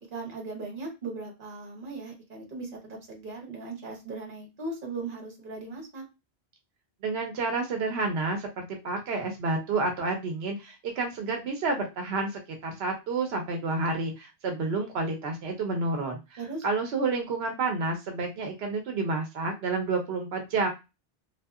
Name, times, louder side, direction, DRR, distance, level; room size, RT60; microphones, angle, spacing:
voice 1, 0.1-6.0 16.4-16.6, right 3 dB, 55° right, 1 dB, 1.0 m, -38 dB
voice 2, 7.0-20.7, right 3 dB, 85° right, 3 dB, 0.9 m, -30 dB
2.6 x 2.3 x 2.3 m, 0.25 s
omnidirectional pair, 1.0 m